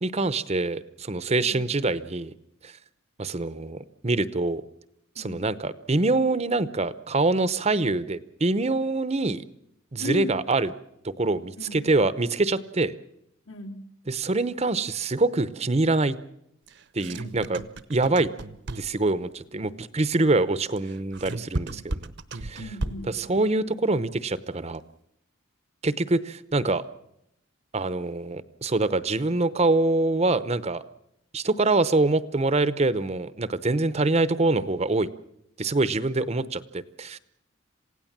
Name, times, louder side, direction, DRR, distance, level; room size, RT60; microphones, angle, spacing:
voice 1, 0.0-2.3 2.6-2.7 3.2-4.6 5.2-9.4 9.9-10.7 11.0-12.9 14.1-16.2 16.9-17.6 17.9-18.3 18.8-22.1 22.4-22.6 23.2-24.8 25.8-26.8 27.7-30.8 31.3-35.1 35.6-37.2, right 2 dB, 30° right, 15 dB, 0.8 m, -25 dB
voice 2, 5.1-5.5 10.0-10.4 11.5-11.8 13.5-13.9 17.1-17.5 22.6-23.3, left 2 dB, 75° left, 2 dB, 3.3 m, -37 dB
sound 1, 16.7-19.1 20.8-23.2, right 2 dB, 55° right, 0.9 m, -34 dB
27.5 x 17.0 x 7.4 m, 0.78 s
head